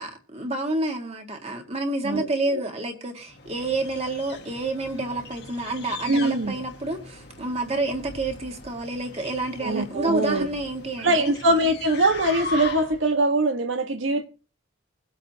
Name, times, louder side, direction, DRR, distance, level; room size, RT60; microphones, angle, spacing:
voice 1, 0.0-11.3, right 2 dB, 30° right, 1.8 m, -29 dB
voice 2, 2.0-2.6 6.1-6.5 9.6-10.5 11.0-14.2, right 2 dB, 75° right, 1.5 m, -23 dB
sound 1, 3.3-13.1, left 3 dB, 55° left, 1.5 m, -39 dB
22.5 x 8.2 x 2.9 m
head